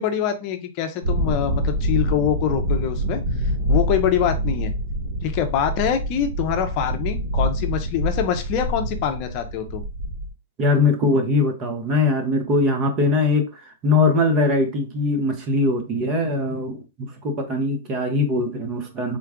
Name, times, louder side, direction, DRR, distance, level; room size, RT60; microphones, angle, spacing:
voice 1, 0.0-3.2 3.7-4.7 5.2-9.8, left 9 dB, 40° left, 0.6 m, -24 dB
sound 1, 1.0-10.3, equal, 65° right, 1.5 m, -25 dB
voice 2, 10.6-19.2, left 2 dB, 30° right, 0.9 m, -21 dB
3.8 x 2.3 x 3.6 m
hypercardioid pair, 130°, 0 cm